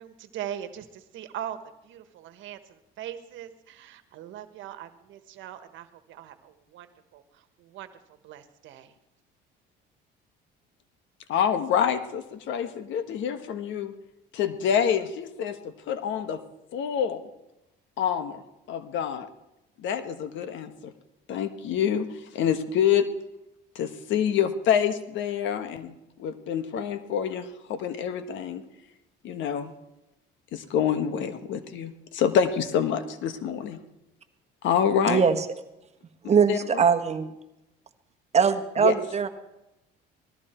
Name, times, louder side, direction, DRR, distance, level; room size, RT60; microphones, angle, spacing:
voice 1, 0.0-1.6 1.8-7.9 8.2-8.9, right 11 dB, 75° right, 10 dB, 1.4 m, -41 dB
voice 2, 11.3-13.9 14.3-16.4 16.7-17.2 18.0-18.4 18.7-19.3 19.8-20.9 21.3-22.1 22.3-23.1 23.7-25.9 26.2-28.6 29.2-29.7 30.5-33.8 34.6-35.2 36.5-36.8 38.8-38.9, left 8 dB, 70° left, 9 dB, 1.4 m, -27 dB
voice 3, 35.1-35.5 36.2-37.3 38.3-39.3, right 6 dB, 35° right, 7 dB, 1.4 m, -22 dB
19.0 x 14.0 x 4.5 m, 0.92 s
cardioid pair, 105°, 20 cm